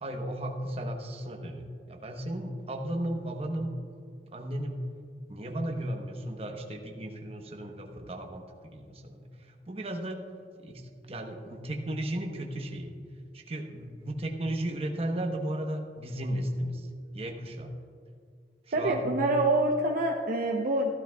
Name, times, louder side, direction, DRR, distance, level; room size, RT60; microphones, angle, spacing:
voice 1, 0.0-3.7 4.3-4.8 5.3-9.3 9.7-10.2 10.6-12.9 13.3-16.9 17.1-17.7 18.8-19.1, right 1 dB, 35° right, 3 dB, 1.0 m, -35 dB
voice 2, 18.7-20.9, right 2 dB, 50° right, 0 dB, 0.7 m, -26 dB
15.5 x 12.5 x 2.3 m, 2.2 s
head